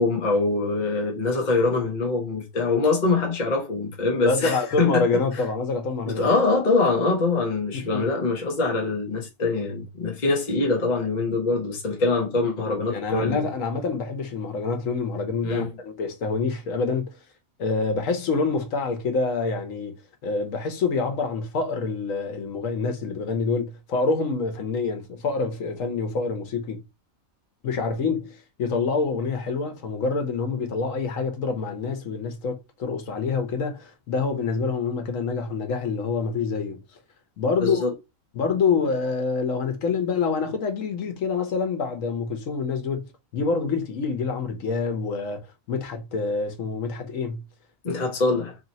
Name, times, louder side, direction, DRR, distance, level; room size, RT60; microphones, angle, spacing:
voice 1, 0.0-5.1 5.3-5.4 6.0-13.5 15.4-15.7 37.6-37.9 47.8-48.6, left 3 dB, 35° left, 1.0 m, -24 dB
voice 2, 4.2-6.3 7.7-8.0 12.9-17.1 17.6-19.9 20.2-26.8 27.6-36.8 37.4-37.8 38.3-43.1 43.3-45.4 45.7-47.4, left 4 dB, 85° left, 1.3 m, -26 dB
3.0 x 2.9 x 4.0 m
omnidirectional pair, 1.3 m